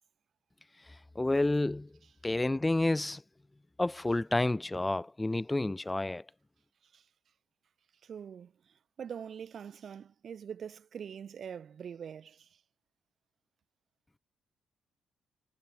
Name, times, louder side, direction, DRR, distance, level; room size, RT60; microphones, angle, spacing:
voice 1, 1.2-1.9 2.2-3.2 3.8-6.2, left 2 dB, 15° left, 0.4 m, -29 dB
voice 2, 8.0-12.6, right 7 dB, 55° right, 0.5 m, -44 dB
cardioid pair, 90°, 0 cm